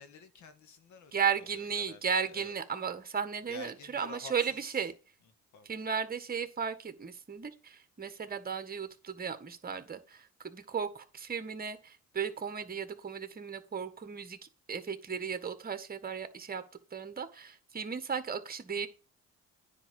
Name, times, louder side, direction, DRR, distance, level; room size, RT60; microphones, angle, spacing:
voice 1, 0.0-2.5 3.5-4.8 5.5-5.7, left 4 dB, 70° left, 1.9 m, -50 dB
voice 2, 1.1-4.9 5.7-14.4 14.7-16.6 16.9-18.9, right 6 dB, 30° right, 1.6 m, -35 dB
9.8 x 4.7 x 7.1 m
cardioid pair, 90°, 30 cm